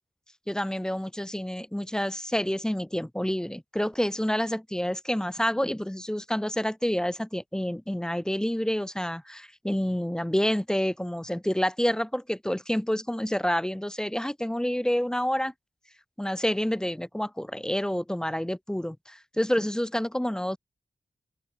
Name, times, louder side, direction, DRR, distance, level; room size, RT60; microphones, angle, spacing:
voice 1, 0.5-15.5 16.2-20.6, equal, 5° left, 0.4 m, -28 dB
open air
wide cardioid pair, 115°, 17 cm